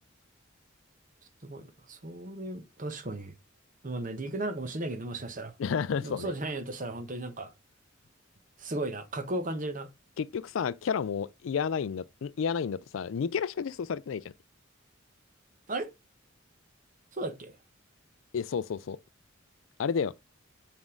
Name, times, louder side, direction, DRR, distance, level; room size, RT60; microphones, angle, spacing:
voice 1, 1.4-3.3 3.8-5.5 6.0-7.5 8.6-9.9 15.7-15.9 17.1-17.6, right 2 dB, 40° right, 1.0 m, -35 dB
voice 2, 5.6-6.3 10.2-14.2 18.3-19.0 19.8-20.1, left 6 dB, 75° left, 0.4 m, -31 dB
7.2 x 3.6 x 3.6 m
head